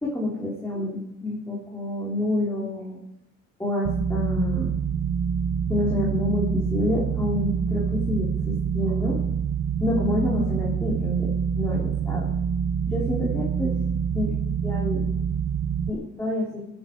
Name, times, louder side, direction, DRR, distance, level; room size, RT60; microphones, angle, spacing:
voice 1, 0.0-3.0 3.6-4.7 5.7-9.2 9.8-12.3 12.9-13.7 14.1-14.3 14.6-15.1 15.9-16.6, left 1 dB, 10° left, -5 dB, 3.8 m, -28 dB
sound 1, 3.8-15.9, right 7 dB, 45° right, 0.7 m, -26 dB
22.5 x 9.9 x 4.7 m, 0.86 s
cardioid pair, 90°, 30 cm